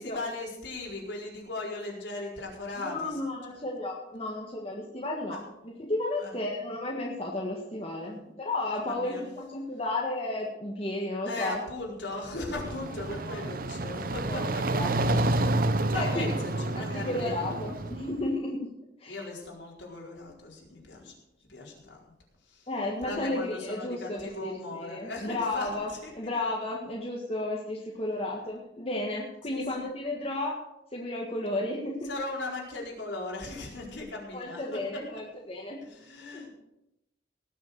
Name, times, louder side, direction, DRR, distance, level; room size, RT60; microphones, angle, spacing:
voice 1, 0.0-3.2 5.3-5.4 6.2-6.3 8.0-8.2 8.7-9.2 11.3-14.4 15.1-17.6 19.1-21.1 21.5-22.1 22.4-22.7 23.0-25.7 26.0-26.3 29.5-29.8 32.0-35.2 35.8-36.5, left 2 dB, 85° left, -2 dB, 4.4 m, -38 dB
voice 2, 2.8-11.6 13.1-13.7 14.3-14.4 14.7-15.2 15.9-18.7 19.0-19.2 20.9-21.1 22.7-30.6 30.9-32.1 34.3-35.8 36.2-36.4, left 2 dB, 35° left, -2 dB, 1.7 m, -33 dB
sound 1, 12.2-18.3, right 2 dB, 50° right, 0.7 m, -29 dB
18.5 x 6.9 x 6.6 m, 0.88 s
head